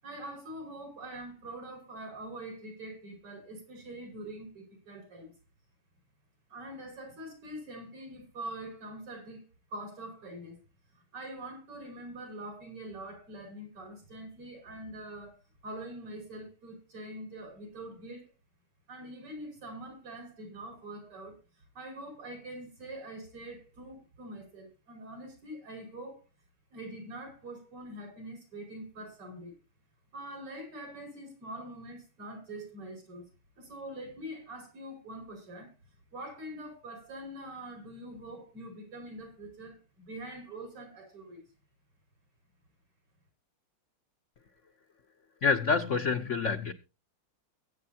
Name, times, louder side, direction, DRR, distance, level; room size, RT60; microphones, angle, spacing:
voice 1, 0.0-5.3 6.5-10.6 10.9-18.3 18.9-26.2 26.7-29.5 30.1-33.3 33.6-35.7 36.1-41.4, right 1 dB, 90° right, 6.3 m, -44 dB
voice 2, 45.4-46.7, left 5 dB, 90° left, 0.6 m, -27 dB
22.5 x 8.3 x 2.8 m
omnidirectional pair, 2.4 m